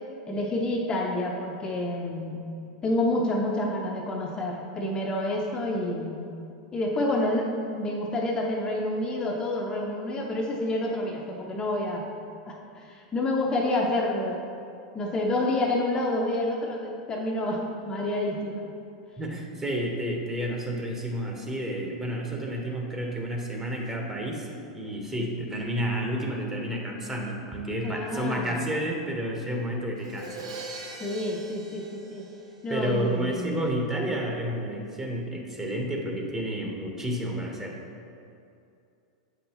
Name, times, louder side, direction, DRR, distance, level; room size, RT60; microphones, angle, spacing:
voice 1, 0.3-2.4 2.8-6.2 6.7-12.0 12.5-14.4 14.9-18.7 27.8-28.6 31.0-32.3 32.6-33.8, left 1 dB, 25° left, -1 dB, 0.7 m, -28 dB
voice 2, 19.2-30.4 32.7-37.8, right 1 dB, 15° right, 0 dB, 1.1 m, -30 dB
Crash cymbal, 30.0-32.9, right 3 dB, 85° right, 0.9 m, -42 dB
7.6 x 5.3 x 3.0 m, 2.6 s
hypercardioid pair, 105°, 3 cm